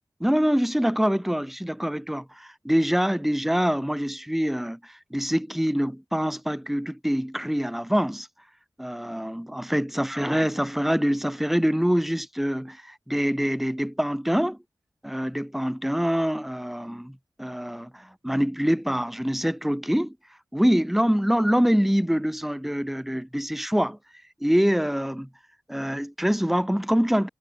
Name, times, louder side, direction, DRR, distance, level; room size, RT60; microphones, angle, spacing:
voice 1, 0.2-8.3 8.8-14.6 15.0-20.1 20.5-24.0 24.4-25.3 25.7-27.3, equal, 5° right, 1.2 m, -25 dB
cardioid pair, 50°, 8 cm